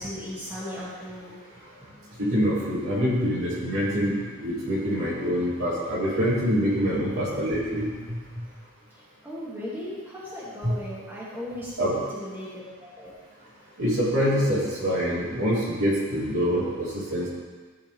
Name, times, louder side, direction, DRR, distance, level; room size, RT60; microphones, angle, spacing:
voice 1, 0.0-1.4 8.9-12.5 12.8-13.1, left 1 dB, 10° right, -10 dB, 2.1 m, -37 dB
voice 2, 2.2-4.2 4.4-7.9 10.6-10.7 11.8-12.0 13.8-17.3, equal, 60° right, -8 dB, 3.0 m, -25 dB
15.0 x 5.3 x 3.4 m, 1.4 s
head